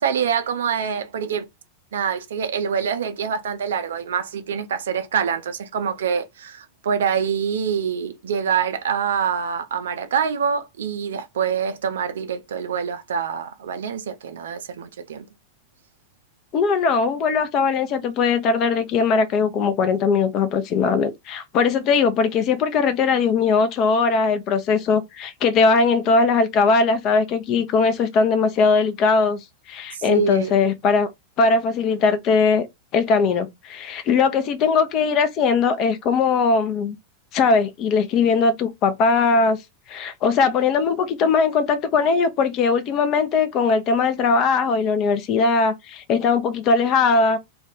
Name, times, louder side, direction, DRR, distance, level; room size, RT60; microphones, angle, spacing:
voice 1, 0.0-1.5 1.9-15.3 29.9-30.5, right 7 dB, 60° right, 0.5 m, -25 dB
voice 2, 16.5-29.4 29.7-31.1 31.4-32.7 32.9-37.0 37.3-39.6 39.9-47.4, left 4 dB, 35° left, 0.6 m, -20 dB
2.4 x 2.3 x 3.6 m
figure-of-eight pair, 90°, 0 cm